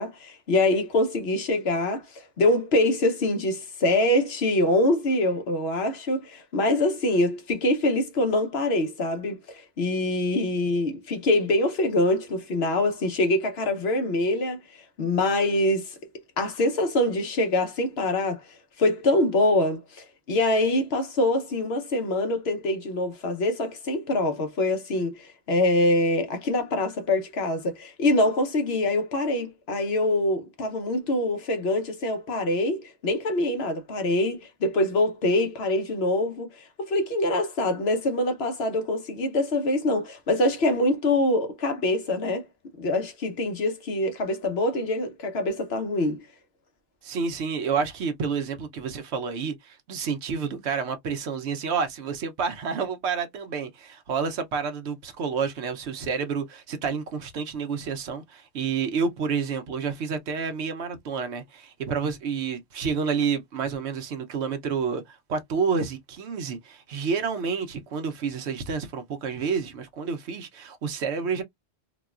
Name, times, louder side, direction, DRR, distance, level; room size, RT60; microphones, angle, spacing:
voice 1, 0.0-2.0 2.4-14.6 15.0-16.0 16.4-18.4 18.8-42.5 42.8-46.2, left 1 dB, 70° left, 1.1 m, -24 dB
voice 2, 47.0-71.4, right 5 dB, 85° right, 1.0 m, -29 dB
3.8 x 2.3 x 2.3 m
omnidirectional pair, 1.1 m